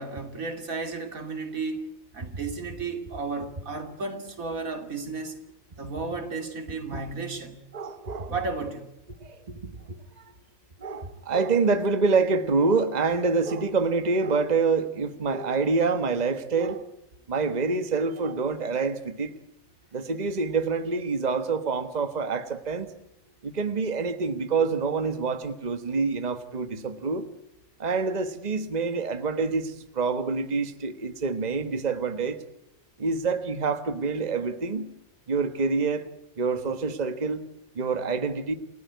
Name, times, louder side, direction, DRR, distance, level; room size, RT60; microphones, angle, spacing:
voice 1, 0.0-5.4 5.8-7.7 8.3-8.9, right 3 dB, 85° right, 3.2 m, -33 dB
voice 2, 7.7-8.3 9.2-10.3 10.8-16.8 17.3-19.3 19.9-22.9 23.4-27.3 27.8-32.4 33.0-34.9 35.3-36.1 36.4-37.4 37.7-38.5, right 4 dB, 30° right, 1.4 m, -26 dB
28.5 x 16.5 x 9.4 m
omnidirectional pair, 1.4 m